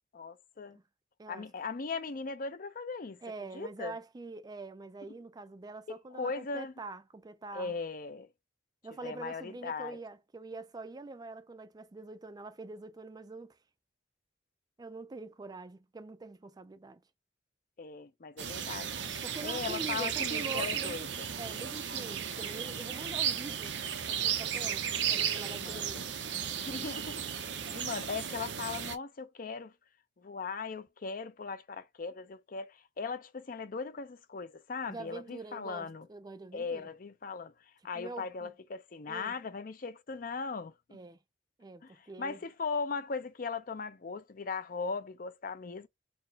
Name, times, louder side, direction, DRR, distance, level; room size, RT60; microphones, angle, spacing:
voice 1, 0.1-0.8 1.3-3.2 3.5-4.0 6.2-6.7 7.5-8.3 9.0-10.0 17.8-18.9 19.4-21.3 25.5-26.1 26.6-29.7 30.2-36.1 36.5-40.7 41.8-45.9, left 4 dB, 50° left, 0.6 m, -39 dB
voice 2, 3.2-7.8 8.8-13.6 14.8-17.0 19.2-21.1 21.4-23.8 24.1-26.1 34.9-36.9 37.9-38.5 39.1-39.3 40.9-41.2 41.6-42.4, right 3 dB, 20° right, 0.4 m, -45 dB
sound 1, 18.4-29.0, right 8 dB, 85° right, 0.7 m, -35 dB
4.4 x 2.1 x 3.9 m
head